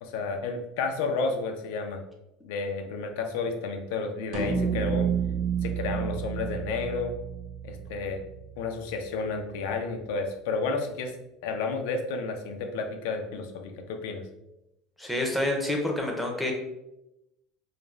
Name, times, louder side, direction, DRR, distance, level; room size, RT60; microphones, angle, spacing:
voice 1, 0.0-2.0 2.5-5.1 5.6-7.1 7.6-8.2 8.6-11.1 11.4-14.3, left 4 dB, 75° left, 5 dB, 0.4 m, -31 dB
sound 1, 4.3-8.8, right 7 dB, 45° right, 0.5 m, -30 dB
voice 2, 15.0-16.5, left 1 dB, 5° left, 1 dB, 0.5 m, -28 dB
2.4 x 2.0 x 3.1 m, 0.91 s
cardioid pair, 155°, 0 cm